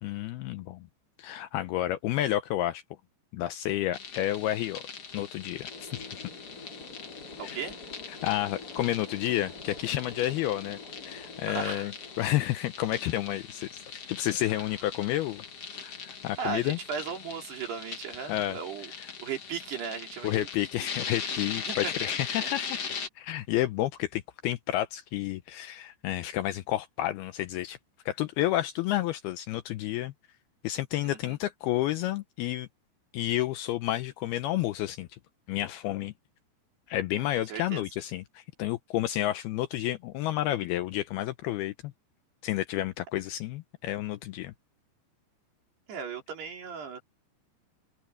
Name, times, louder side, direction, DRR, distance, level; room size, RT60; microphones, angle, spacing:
voice 1, 0.0-0.9 1.2-2.8 3.3-4.8 5.1-6.3 7.4-7.7 8.1-10.8 11.1-15.4 15.8-16.8 18.3-18.6 18.9-19.1 20.2-22.8 23.2-27.8 28.1-30.1 30.6-32.7 33.1-35.2 35.5-36.1 36.9-41.9 42.4-44.5, left 14 dB, 80° left, 2.3 m, -30 dB
sound 1, 3.9-23.1, left 6 dB, 40° left, 2.7 m, -40 dB
sound 2, 5.7-17.1, left 3 dB, 20° left, 4.6 m, -49 dB
voice 2, 7.4-7.8 11.5-11.9 16.4-18.9 19.2-20.5 21.2-21.3 21.7-21.9 22.4-22.5 31.0-31.4 37.5-37.8 45.9-47.0, right 6 dB, 65° right, 5.8 m, -36 dB
open air
omnidirectional pair, 5.1 m